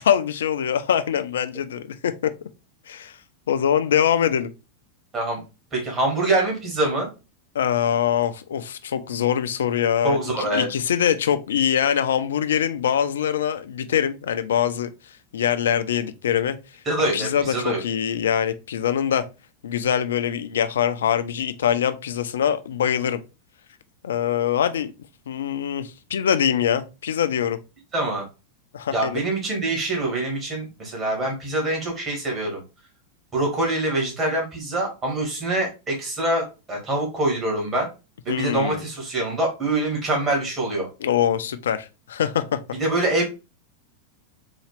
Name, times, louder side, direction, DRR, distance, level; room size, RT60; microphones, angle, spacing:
voice 1, 0.0-2.3 2.9-3.2 3.5-4.5 7.5-14.9 15.3-16.6 17.1-19.2 19.6-23.2 24.0-24.9 25.3-27.6 28.7-29.2 38.3-38.8 41.0-42.6, left 9 dB, 65° left, 0.3 m, -23 dB
voice 2, 5.7-7.1 10.0-10.7 16.8-17.8 27.9-28.2 28.9-32.6 33.3-37.9 38.2-40.9 42.8-43.2, right 2 dB, 20° right, 1.6 m, -24 dB
4.1 x 2.3 x 3.2 m
figure-of-eight pair, 90°, 0 cm